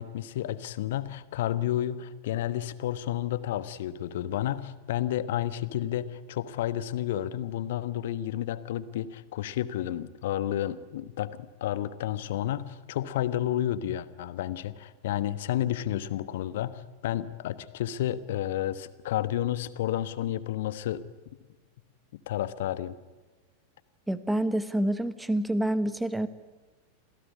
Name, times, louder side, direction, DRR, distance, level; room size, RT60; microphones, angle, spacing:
voice 1, 0.0-21.0 22.1-22.9, left 12 dB, 55° left, 15 dB, 1.2 m, -31 dB
voice 2, 24.1-26.3, right 1 dB, 5° right, 14 dB, 1.4 m, -27 dB
27.0 x 16.5 x 9.7 m, 1.3 s
figure-of-eight pair, 90°, 0 cm